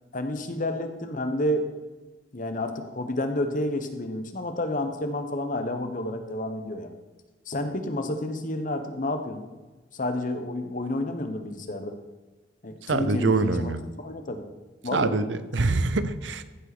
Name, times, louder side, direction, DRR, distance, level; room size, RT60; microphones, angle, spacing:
voice 1, 0.1-1.7 2.3-6.9 7.5-9.4 9.9-11.9 12.6-13.7 14.0-14.4 14.8-15.1, left 1 dB, 45° left, 7 dB, 1.2 m, -30 dB
voice 2, 12.8-13.8 14.9-16.4, right 3 dB, 80° right, 13 dB, 0.8 m, -25 dB
15.0 x 5.5 x 6.1 m, 1.2 s
head